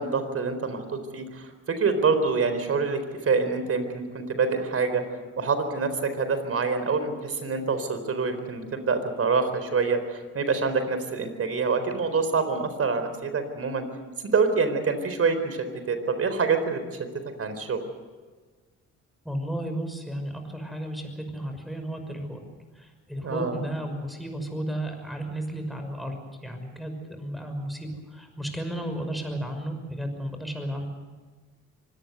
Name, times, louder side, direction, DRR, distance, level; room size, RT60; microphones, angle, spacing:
voice 1, 0.0-5.0 5.4-13.8 14.2-17.0 17.4-17.8 23.2-23.6, right 4 dB, 50° right, 9 dB, 4.2 m, -26 dB
voice 2, 19.2-22.4 22.7-30.9, right 1 dB, ahead, 4 dB, 6.0 m, -33 dB
24.5 x 18.5 x 8.1 m, 1.4 s
cardioid pair, 90°, 30 cm